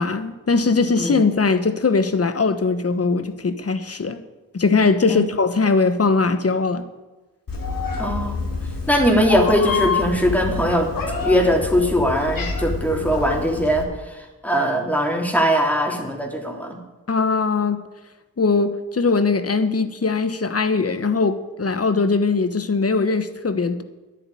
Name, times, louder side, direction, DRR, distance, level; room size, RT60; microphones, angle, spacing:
voice 1, 0.0-4.2 4.5-6.9 17.1-17.8 18.4-23.8, left 4 dB, 40° left, 10 dB, 1.3 m, -20 dB
Meow, 7.5-13.8, left 3 dB, 70° left, 2.7 m, -27 dB
voice 2, 8.0-8.4 8.9-10.9 11.2-13.9 14.4-16.8, equal, 5° left, 0 dB, 3.2 m, -20 dB
10.5 x 8.8 x 9.1 m, 1.1 s
cardioid pair, 55°, 36 cm